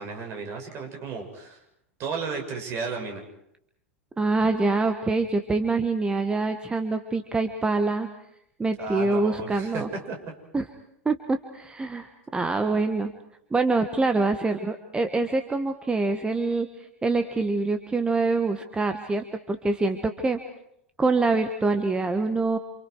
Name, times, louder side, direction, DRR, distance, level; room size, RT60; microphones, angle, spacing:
voice 1, 0.0-1.6 2.0-3.2 8.8-10.2, right 4 dB, 40° right, 3 dB, 6.4 m, -33 dB
voice 2, 4.2-8.1 8.6-9.9 10.5-10.7 11.0-13.1 13.5-20.4 21.0-22.6, right 3 dB, 15° right, 7 dB, 1.5 m, -25 dB
28.5 x 27.5 x 4.8 m, 0.76 s
figure-of-eight pair, 90°, 7 cm